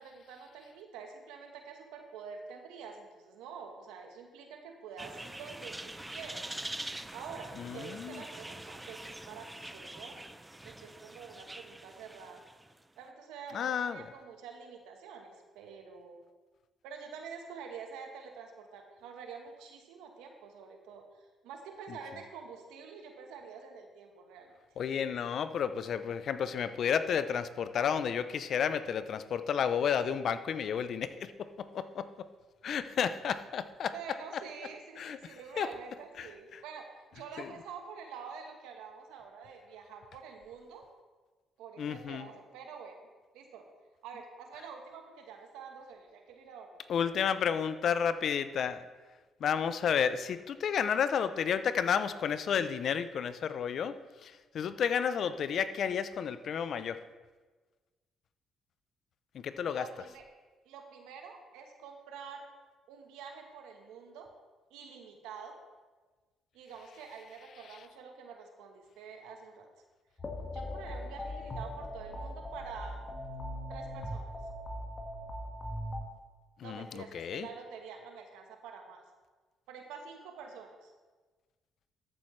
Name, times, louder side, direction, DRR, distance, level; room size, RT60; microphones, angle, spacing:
voice 1, 0.0-6.5 7.1-10.2 10.6-12.4 13.0-16.2 16.8-21.1 21.4-24.5 33.9-36.9 37.1-40.8 41.6-43.0 43.3-43.7 44.0-47.3 59.7-60.2 60.6-62.4 62.9-64.3 64.7-65.5 66.5-69.7 70.5-73.0 73.7-74.3 76.6-79.0 79.7-80.9, right 6 dB, 85° right, 3 dB, 1.2 m, -47 dB
sound 1, 5.0-12.8, right 1 dB, 15° right, 0.6 m, -44 dB
voice 2, 7.6-8.2 13.5-14.0 24.8-31.5 31.7-32.1 32.6-33.9 35.0-35.2 35.6-35.7 36.2-36.6 37.4-37.5 41.8-42.3 46.9-48.8 49.4-57.0 59.3-59.8 76.6-77.5, left 7 dB, 65° left, 12 dB, 0.5 m, -31 dB
sound 2, 70.2-76.0, left 1 dB, 35° left, 1.7 m, -40 dB
13.5 x 7.2 x 3.2 m, 1.3 s
supercardioid pair, 60°, 0 cm